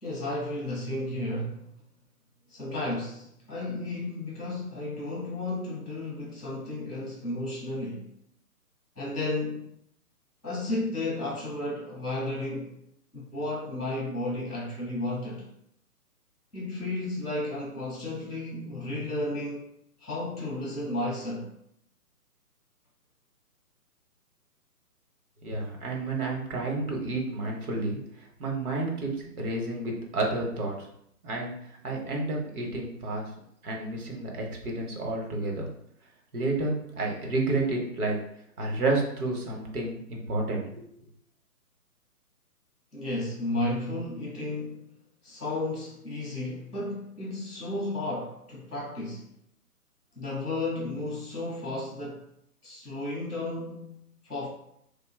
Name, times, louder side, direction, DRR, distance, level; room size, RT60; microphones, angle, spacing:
voice 1, 0.0-1.7 2.5-8.1 9.0-9.7 10.4-12.8 13.1-15.5 16.5-19.7 20.0-21.5 42.9-44.9 45.2-49.3 50.1-52.2 52.6-54.5, left 2 dB, ahead, -18 dB, 0.4 m, -33 dB
voice 2, 25.4-29.1 29.4-30.9 31.2-31.5 31.8-33.3 33.6-35.7 36.3-38.1 38.6-40.8, right 2 dB, 65° right, 0 dB, 1.0 m, -30 dB
2.7 x 2.2 x 3.3 m, 0.72 s
hypercardioid pair, 150°, 47 cm